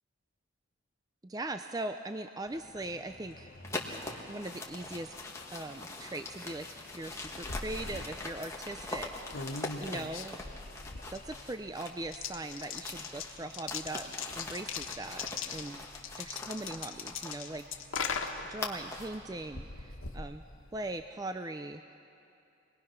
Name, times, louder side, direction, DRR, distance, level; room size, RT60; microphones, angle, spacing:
voice 1, 1.2-3.5 4.3-5.1 5.5-9.1 9.4-10.4 11.1-14.1 14.4-15.3 15.5-15.8 16.2-17.6 18.5-20.4 20.7-21.8, right 2 dB, 20° right, 8 dB, 0.4 m, -40 dB
Engine, 2.4-11.4, left 2 dB, 45° left, 1.4 m, -55 dB
sound 1, 3.6-12.1 12.4-19.2, left 2 dB, 15° left, 1.6 m, -43 dB
sound 2, 7.0-21.1, left 5 dB, 80° left, 1.5 m, -41 dB
27.5 x 20.5 x 5.8 m, 2.6 s
head